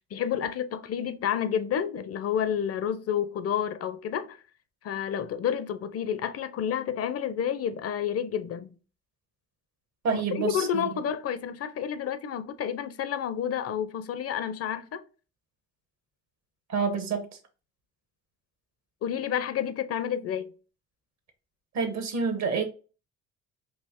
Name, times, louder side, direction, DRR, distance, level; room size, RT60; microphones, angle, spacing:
voice 1, 0.1-4.4 4.8-8.8 10.1-15.0 19.0-20.5, left 8 dB, 50° left, 0.5 m, -30 dB
voice 2, 10.0-11.0 16.7-17.3 21.7-22.6, right 5 dB, 65° right, 1.0 m, -28 dB
3.2 x 2.4 x 3.5 m
cardioid pair, 90°, 30 cm